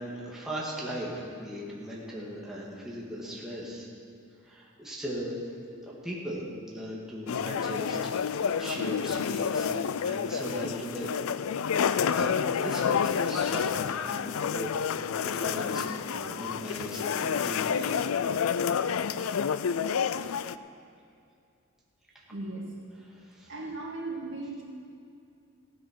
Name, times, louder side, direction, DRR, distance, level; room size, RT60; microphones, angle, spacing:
voice 1, 0.0-3.9 4.4-5.3 5.8-8.0 8.4-11.3 11.8-18.1 23.1-23.5, right 1 dB, ahead, -6 dB, 2.1 m, -38 dB
sound 1, 7.3-20.6, left 7 dB, 75° left, 0.4 m, -29 dB
voice 2, 22.3-22.7 23.5-24.6, right 2 dB, 60° right, -3 dB, 2.5 m, -37 dB
16.0 x 9.4 x 6.1 m, 2.4 s
head